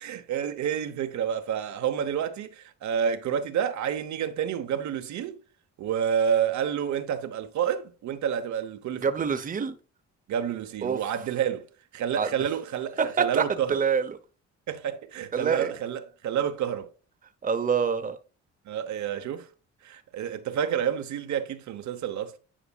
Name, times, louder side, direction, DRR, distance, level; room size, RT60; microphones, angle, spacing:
voice 1, 0.0-5.4 5.8-9.3 10.3-11.7 11.9-13.8 14.7-16.9 18.7-19.5 19.8-22.4, right 8 dB, 70° right, 0.9 m, -29 dB
voice 2, 9.0-9.7 10.8-11.0 12.2-12.3 13.0-14.2 15.3-15.7 17.4-18.2, right 6 dB, 30° right, 0.7 m, -26 dB
10.0 x 4.8 x 2.3 m
cardioid pair, 90°, 30 cm